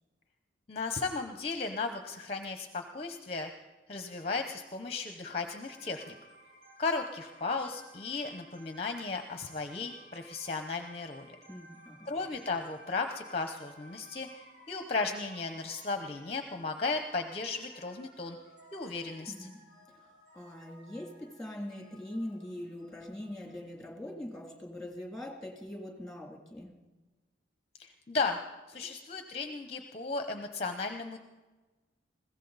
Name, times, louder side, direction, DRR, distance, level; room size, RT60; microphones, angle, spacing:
voice 1, 0.7-3.5 3.9-6.2 6.8-11.4 12.1-18.4 18.7-19.3 27.8-28.4 28.7-31.2, left 4 dB, 30° left, 6 dB, 0.8 m, -35 dB
sound 1, 5.4-23.7, right 1 dB, 60° right, 5.4 m, -57 dB
voice 2, 11.5-12.1 19.3-19.6 20.3-26.8, left 1 dB, 5° left, 1 dB, 2.7 m, -42 dB
21.0 x 16.5 x 4.1 m, 1.2 s
head